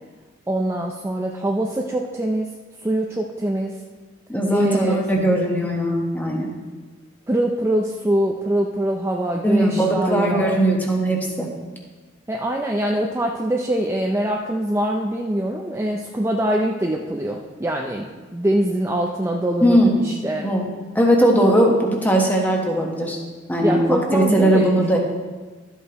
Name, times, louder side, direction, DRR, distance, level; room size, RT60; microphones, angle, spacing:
voice 1, 0.5-2.5 2.8-3.8 4.5-5.0 7.3-10.6 12.3-20.5 23.6-24.7, right 1 dB, 15° right, 0 dB, 0.4 m, -23 dB
voice 2, 4.3-6.5 9.4-11.5 19.6-19.9 20.4-20.7 20.9-23.2 23.5-25.0, right 1 dB, 10° left, 0 dB, 1.2 m, -19 dB
12.5 x 8.1 x 3.0 m, 1.3 s
head